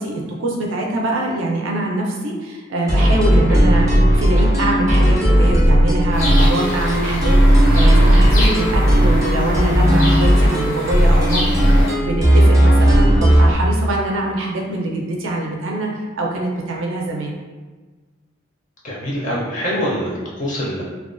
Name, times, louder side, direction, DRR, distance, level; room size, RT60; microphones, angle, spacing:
voice 1, 0.0-3.9 4.2-17.4, right 1 dB, 75° right, -1 dB, 0.4 m, -24 dB
sound 1, 2.9-13.5, equal, 15° right, 0.5 m, -14 dB
voice 2, 3.5-4.0 5.0-5.2 12.9-13.2 18.8-20.8, equal, 35° left, -5 dB, 0.4 m, -26 dB
sound 2, 6.1-11.9, left 1 dB, 80° left, 0.6 m, -27 dB
2.3 x 2.2 x 2.5 m, 1.3 s
head